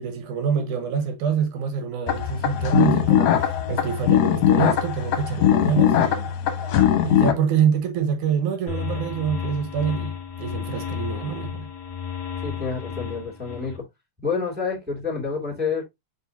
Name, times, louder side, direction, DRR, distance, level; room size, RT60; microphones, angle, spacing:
voice 1, 0.0-6.3 7.0-11.7, right 7 dB, 80° right, 2.7 m, -26 dB
sound 1, 2.1-7.3, left 10 dB, 70° left, 2.2 m, -20 dB
sound 2, 8.7-13.8, left 8 dB, 45° left, 1.2 m, -32 dB
voice 2, 12.4-13.8 14.2-15.9, left 5 dB, 5° right, 2.3 m, -28 dB
6.9 x 5.4 x 2.7 m
omnidirectional pair, 3.6 m